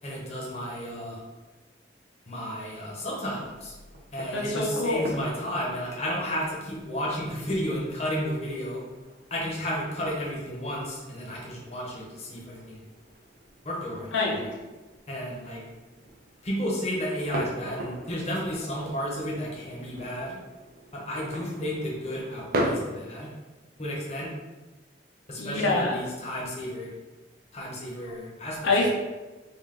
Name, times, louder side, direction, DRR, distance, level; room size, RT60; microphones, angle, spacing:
voice 1, 0.0-1.2 2.3-3.7 4.1-8.8 9.3-12.8 13.6-14.5 15.1-15.6 16.4-20.4 20.9-23.3 23.8-24.3 25.3-26.9 27.5-28.6, equal, 35° left, -4 dB, 0.8 m, -32 dB
sound 1, 3.4-22.7, right 1 dB, 50° right, 0.5 m, -40 dB
voice 2, 4.3-5.0 14.1-14.4 25.4-26.0 28.6-28.9, left 2 dB, 90° left, -2 dB, 0.7 m, -25 dB
3.5 x 2.4 x 3.7 m, 1.2 s
head